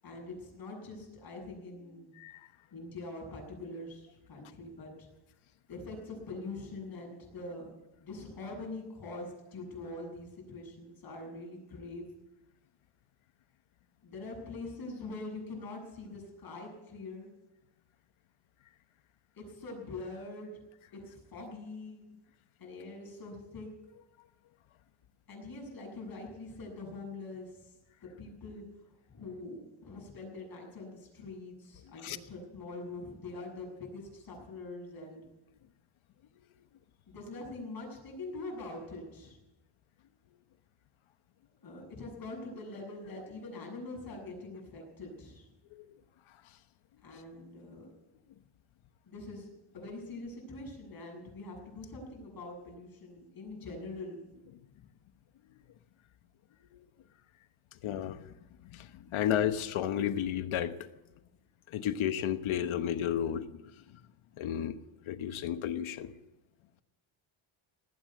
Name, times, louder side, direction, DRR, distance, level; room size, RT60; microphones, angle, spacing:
voice 1, 0.0-2.1 2.7-5.1 5.7-7.7 8.0-12.1 14.0-17.3 19.4-20.5 20.9-22.0 22.6-23.7 25.3-27.7 28.0-28.6 29.1-35.2 37.1-39.4 41.6-45.5 47.0-47.9 49.1-49.5 49.7-54.2, left 2 dB, 45° left, 7.5 m, -44 dB
voice 2, 2.2-2.5 32.0-32.2 45.7-45.8 56.7-56.8 57.8-58.3 58.6-60.9 61.7-63.6 63.9-64.0 64.4-64.8 65.1-66.1, left 10 dB, 70° left, 1.2 m, -32 dB
18.5 x 9.3 x 8.2 m
cardioid pair, 125°, 49 cm